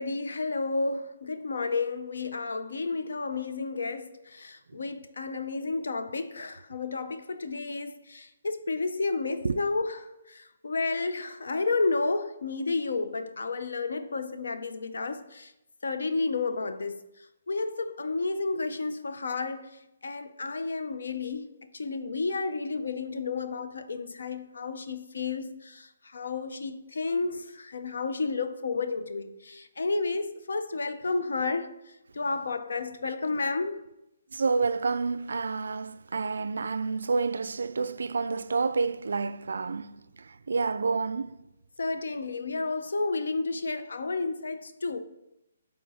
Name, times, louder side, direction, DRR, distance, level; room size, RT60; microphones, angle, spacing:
voice 1, 0.0-15.5 15.8-17.0 17.5-19.7 20.0-21.5 21.7-25.9 26.1-31.8 32.2-33.8 41.8-45.0, left 3 dB, 90° left, 0.6 m, -31 dB
voice 2, 34.3-39.9 40.5-41.3, right 4 dB, 80° right, 0.3 m, -29 dB
8.7 x 3.8 x 4.2 m
hypercardioid pair, 175°, 0 cm